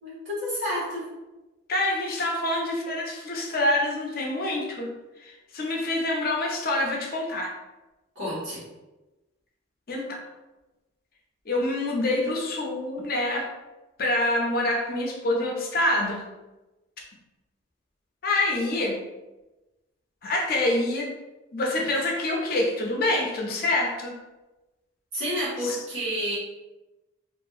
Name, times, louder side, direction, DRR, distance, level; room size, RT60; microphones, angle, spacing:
voice 1, 0.0-1.1 8.1-8.6 25.1-26.4, equal, 70° right, -8 dB, 1.3 m, -30 dB
voice 2, 1.7-4.9 5.2-7.5 9.9-10.2 11.5-13.5 14.0-16.2 18.2-19.0 20.2-21.1 21.5-24.1 25.6-25.8, left 1 dB, 50° left, -1 dB, 0.5 m, -26 dB
2.7 x 2.4 x 2.3 m, 1.1 s
head